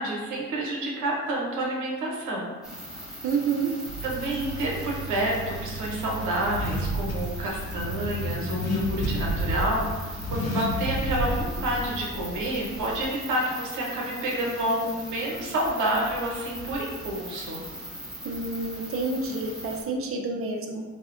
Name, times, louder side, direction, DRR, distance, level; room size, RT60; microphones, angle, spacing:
voice 1, 0.0-2.5 4.0-17.6, right 1 dB, 80° right, -2 dB, 0.8 m, -29 dB
sound 1, 2.6-19.8, equal, ahead, 0.9 m, -41 dB
voice 2, 3.2-3.7 18.2-20.8, right 4 dB, 50° right, 3 dB, 0.5 m, -29 dB
Car / Accelerating revving vroom, 3.9-13.0, equal, 60° left, 0.6 m, -31 dB
4.1 x 2.1 x 2.4 m, 1.4 s
cardioid pair, 90°, 30 cm